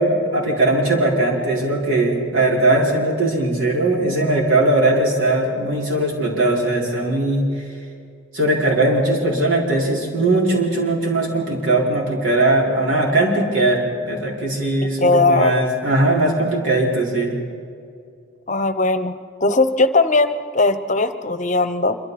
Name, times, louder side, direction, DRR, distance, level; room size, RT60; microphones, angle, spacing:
voice 1, 0.0-7.5 8.3-17.4, right 2 dB, 90° right, -4 dB, 5.5 m, -19 dB
voice 2, 15.0-15.6 18.5-19.1 19.4-22.0, left 3 dB, 40° left, 11 dB, 0.9 m, -18 dB
26.5 x 25.0 x 4.3 m, 2.3 s
head